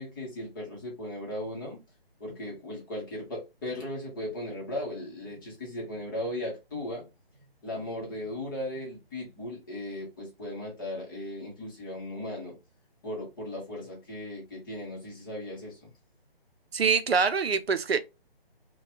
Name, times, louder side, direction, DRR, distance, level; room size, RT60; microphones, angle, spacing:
voice 1, 0.0-1.8 2.2-7.1 7.6-12.6 13.0-15.9, left 1 dB, 20° left, 0.9 m, -37 dB
voice 2, 16.7-18.0, right 5 dB, 85° right, 0.5 m, -24 dB
2.8 x 2.2 x 3.0 m
figure-of-eight pair, 150°, 30 cm